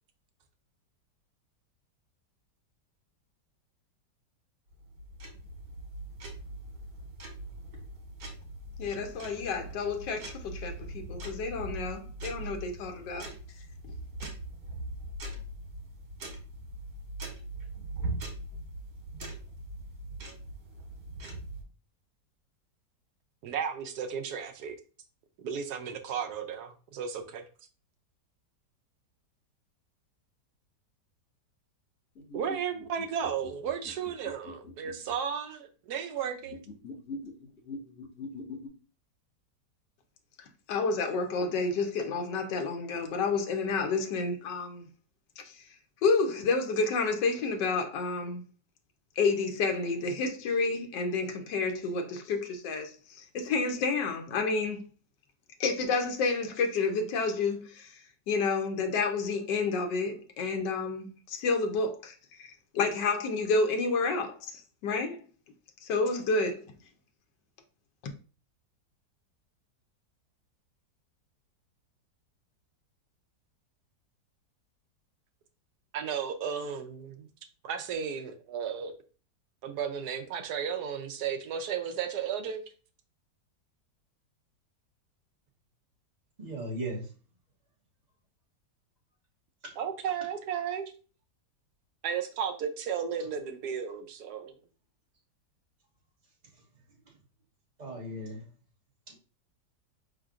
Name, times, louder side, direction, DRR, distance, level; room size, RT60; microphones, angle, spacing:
sound 1, 4.7-21.6, right 2 dB, 85° right, 1.9 m, -41 dB
voice 1, 8.8-13.3 13.8-13.9 40.7-44.9 45.4-45.6 46.0-48.4 49.2-54.8 55.6-58.0 58.3-62.1 62.4-62.5 62.7-65.2 65.8-66.6, left 4 dB, 85° left, 1.4 m, -30 dB
voice 2, 23.4-24.8 25.4-27.4 32.3-36.6 75.9-77.3 77.6-78.9 79.6-82.6 89.8-90.9 92.0-94.5, right 7 dB, 70° right, 1.1 m, -34 dB
sound 2, 32.2-35.2 36.4-38.7, left 2 dB, 60° left, 2.0 m, -43 dB
voice 3, 86.4-87.1 89.6-89.7 97.8-98.4 99.1-99.2, right 1 dB, 25° right, 1.3 m, -37 dB
5.1 x 3.8 x 2.4 m
omnidirectional pair, 1.8 m